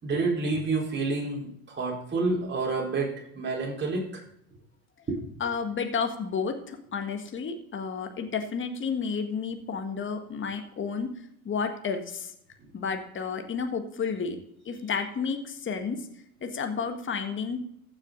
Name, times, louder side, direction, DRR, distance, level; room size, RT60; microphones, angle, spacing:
voice 1, 0.0-4.2 5.1-5.2, right 3 dB, 25° right, -2 dB, 4.4 m, -29 dB
voice 2, 5.4-11.1 11.4-12.3 12.7-14.4 14.6-16.0 16.4-17.6, left 5 dB, 25° left, 6 dB, 1.7 m, -31 dB
15.0 x 6.6 x 3.9 m, 0.72 s
hypercardioid pair, 85°, 44 cm